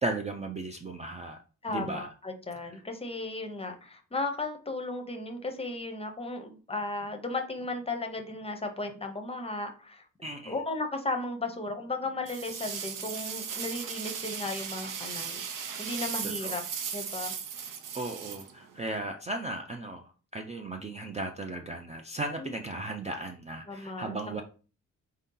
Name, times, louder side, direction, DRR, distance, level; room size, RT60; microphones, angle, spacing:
voice 1, 0.0-1.4 1.7-2.1 2.6-2.8 10.2-10.6 16.2-16.6 17.9-24.4, right 2 dB, 20° right, 4 dB, 0.3 m, -36 dB
voice 2, 1.6-10.0 10.5-16.6 16.9-17.3 22.4-22.5 23.7-24.4, left 2 dB, 20° left, 5 dB, 0.6 m, -35 dB
sound 1, 12.3-19.0, right 7 dB, 85° right, 0.7 m, -37 dB
4.3 x 2.7 x 3.7 m, 0.37 s
wide cardioid pair, 140°, 31 cm